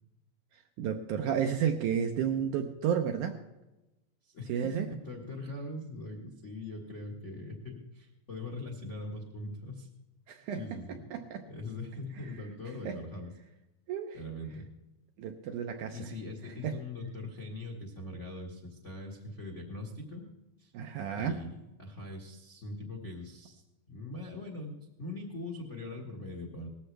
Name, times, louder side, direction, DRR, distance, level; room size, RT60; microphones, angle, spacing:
voice 1, 0.8-3.4 4.5-4.9 10.3-10.8 11.1-11.4 12.9-13.0 13.9-14.2 15.2-16.0 16.6-16.8 20.7-21.4, right 8 dB, 75° right, 5 dB, 1.9 m, -32 dB
voice 2, 4.2-9.9 10.5-11.1 11.4-13.3 14.1-14.7 15.9-20.3 20.6-20.7 21.1-23.6 23.9-26.7, left 2 dB, 45° left, 1 dB, 0.9 m, -41 dB
19.0 x 14.5 x 3.3 m, 0.99 s
omnidirectional pair, 4.3 m